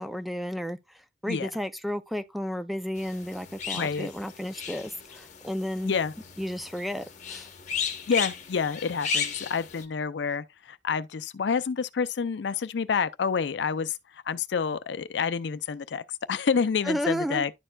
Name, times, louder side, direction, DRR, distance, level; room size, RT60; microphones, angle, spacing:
voice 1, 0.0-6.0 6.4-7.5 16.8-17.4, equal, ahead, 0.4 m, -32 dB
sound 1, 3.0-9.8, left 6 dB, 45° left, 0.9 m, -35 dB
voice 2, 3.7-4.1 5.8-6.1 8.1-14.0 14.3-17.5, left 6 dB, 75° left, 0.4 m, -28 dB
11.0 x 4.4 x 2.3 m
head